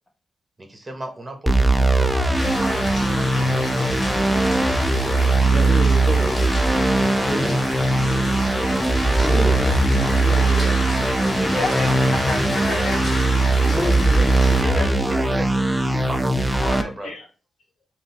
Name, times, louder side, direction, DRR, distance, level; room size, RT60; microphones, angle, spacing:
voice 1, 0.6-4.7 5.0-5.7 7.3-7.5 10.7-10.9 11.4-12.1 14.6-15.7 16.1-17.1, right 1 dB, 25° right, 0.8 m, -35 dB
sound 1, 1.5-16.8, right 2 dB, 5° right, 0.3 m, -20 dB
sound 2, 2.3-14.6, left 1 dB, 40° left, 1.8 m, -29 dB
voice 2, 4.3-4.6 5.5-6.4 7.3-7.6 9.2-10.8 13.6-15.4 15.9-16.1, equal, 15° left, 1.0 m, -30 dB
voice 3, 11.6-13.3 14.7-14.9 16.6-17.2, left 2 dB, 80° left, 0.8 m, -30 dB
3.7 x 2.4 x 2.8 m
wide cardioid pair, 110°, 0 cm